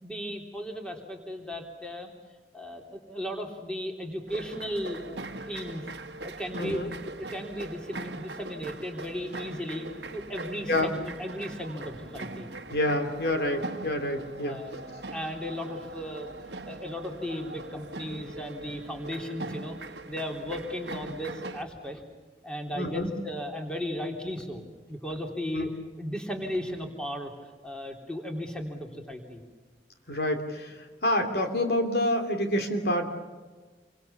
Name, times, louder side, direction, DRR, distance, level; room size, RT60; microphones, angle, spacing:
voice 1, 0.0-2.1 2.5-5.8 6.2-9.9 10.1-12.5 14.4-16.3 16.7-19.8 20.1-22.0 22.4-24.6 24.9-25.7 26.0-29.4, equal, 5° left, 2 dB, 3.3 m, -36 dB
sound 1, 4.3-21.6, right 2 dB, 75° right, 1.3 m, -41 dB
voice 2, 6.5-6.9 10.7-10.9 12.7-14.6 22.7-23.1 25.5-25.7 30.1-33.1, left 1 dB, 60° left, 5 dB, 2.9 m, -28 dB
28.0 x 24.0 x 7.1 m, 1.3 s
head